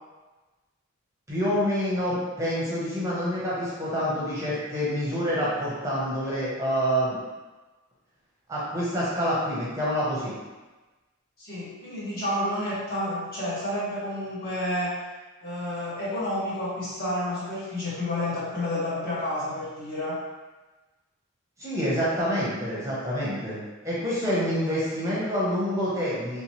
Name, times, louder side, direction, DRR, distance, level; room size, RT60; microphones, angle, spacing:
voice 1, 1.3-7.2 8.5-10.3 21.6-26.4, equal, 15° right, -8 dB, 0.7 m, -27 dB
voice 2, 11.4-15.0 15.4-20.2, left 1 dB, 45° left, -9 dB, 1.3 m, -30 dB
3.2 x 3.0 x 2.9 m, 1.2 s
head